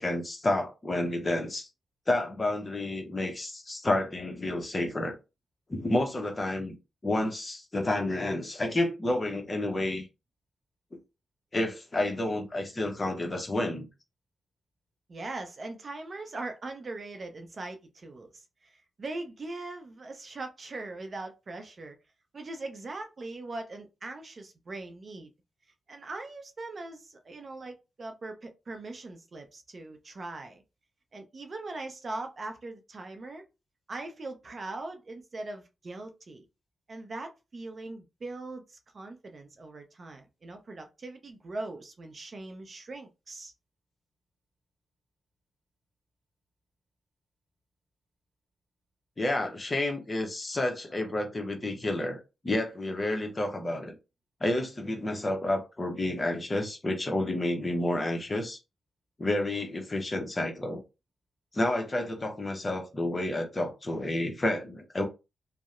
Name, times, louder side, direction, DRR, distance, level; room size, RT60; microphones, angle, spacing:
voice 1, 0.0-1.7 2.1-5.1 5.7-6.7 7.0-10.1 11.5-13.9 49.2-53.9 54.4-58.6 59.2-60.8 61.5-65.0, left 1 dB, 30° left, 0.6 m, -30 dB
voice 2, 15.1-18.3 18.6-22.0 22.3-25.3 25.9-30.6 31.1-33.4 33.9-36.5 36.9-43.5, right 2 dB, 45° right, 0.5 m, -40 dB
2.7 x 2.0 x 2.4 m
cardioid pair, 80°, 0 cm